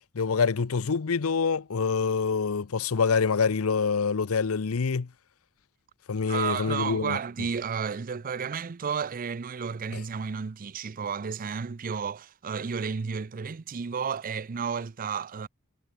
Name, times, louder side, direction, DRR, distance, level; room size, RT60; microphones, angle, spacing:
voice 1, 0.1-5.1 6.1-7.2 9.9-10.0, left 5 dB, 70° left, 0.6 m, -26 dB
voice 2, 6.3-15.5, right 6 dB, 40° right, 0.5 m, -32 dB
head